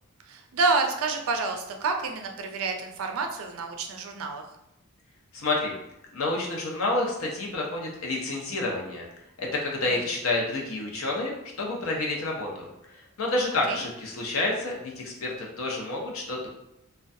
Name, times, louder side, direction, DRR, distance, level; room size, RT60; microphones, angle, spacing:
voice 1, 0.3-4.4 13.7-13.8, right 4 dB, 80° right, 4 dB, 0.4 m, -28 dB
voice 2, 5.3-5.7 6.1-9.1 9.4-16.5, left 2 dB, 80° left, -1 dB, 0.6 m, -29 dB
2.2 x 2.2 x 2.6 m, 0.88 s
head